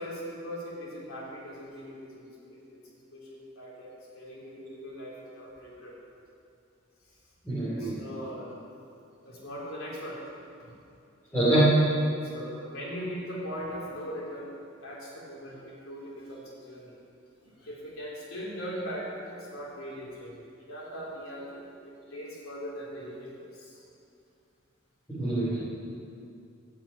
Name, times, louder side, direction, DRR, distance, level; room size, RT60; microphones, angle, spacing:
voice 1, 0.0-2.8 3.1-5.9 7.5-8.6 9.2-10.2 12.3-14.5 14.8-17.0 17.4-23.8 25.4-25.6, equal, 90° left, -5 dB, 3.6 m, -40 dB
voice 2, 7.4-7.9 11.3-11.7 25.1-25.6, right 1 dB, 10° left, -12 dB, 3.1 m, -24 dB
12.5 x 6.1 x 8.7 m, 2.5 s
head